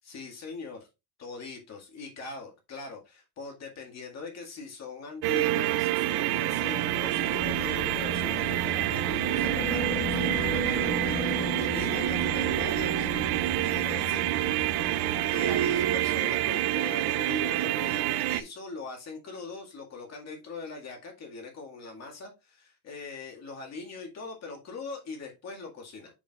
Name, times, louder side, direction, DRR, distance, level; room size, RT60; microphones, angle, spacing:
voice 1, 0.0-0.9 1.2-13.3 13.6-14.2 14.9-15.0 15.3-26.1, left 4 dB, 40° left, 2.0 m, -41 dB
sound 1, 5.2-18.4, right 15 dB, 80° right, 0.6 m, -27 dB
sound 2, 6.4-16.6, left 1 dB, 25° left, 1.0 m, -36 dB
7.0 x 6.4 x 2.4 m
cardioid pair, 155°, 39 cm